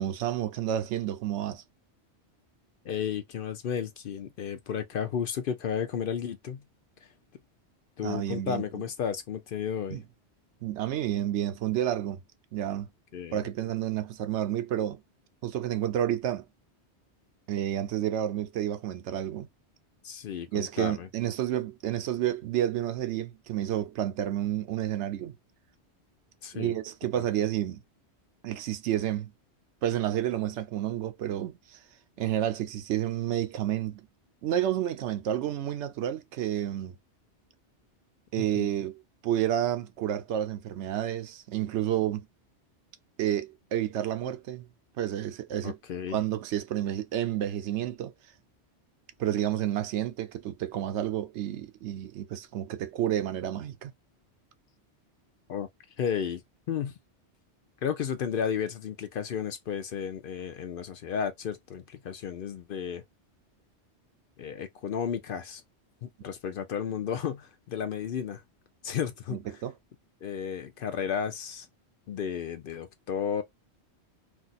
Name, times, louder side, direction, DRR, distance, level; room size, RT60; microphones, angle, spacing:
voice 1, 0.0-1.6 8.0-8.8 9.9-10.0 10.6-12.2 12.5-12.9 13.3-15.0 15.4-16.4 17.5-19.5 20.5-25.4 26.5-27.8 28.4-29.3 29.8-31.8 32.2-34.1 34.4-37.0 38.3-42.2 43.2-44.7 45.0-45.8 46.1-48.1 49.2-53.9 69.3-69.7, right 11 dB, 80° right, 0.9 m, -30 dB
voice 2, 2.8-6.6 8.0-10.0 13.1-13.5 20.0-21.1 26.4-26.7 27.2-27.3 38.4-38.7 45.6-46.2 55.5-55.7 56.0-56.4 56.7-56.9 57.8-63.0 64.4-65.6 66.0-68.4 68.8-69.4 70.2-71.7 72.1-73.4, left 7 dB, 60° left, 0.6 m, -33 dB
2.5 x 2.4 x 4.0 m
omnidirectional pair, 1.2 m